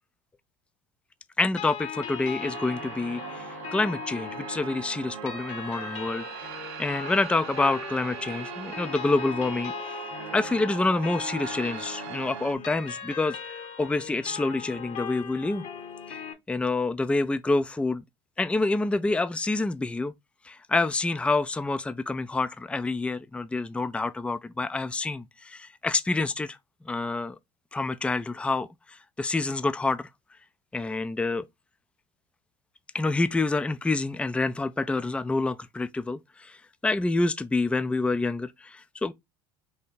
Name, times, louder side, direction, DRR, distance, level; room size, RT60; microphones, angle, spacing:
voice 1, 1.4-6.3 6.8-10.0 10.3-13.4 13.8-15.6 16.1-16.2 16.5-18.0 18.4-20.1 20.4-26.6 26.8-27.4 27.7-30.1 30.7-31.5 32.9-36.6 36.8-39.1, left 3 dB, 10° left, 0.4 m, -27 dB
sound 1, 1.6-16.3, left 7 dB, 55° left, 1.0 m, -39 dB
sound 2, 2.4-12.5, right 10 dB, 85° right, 0.5 m, -40 dB
3.4 x 2.7 x 4.2 m
hypercardioid pair, 75°, 14 cm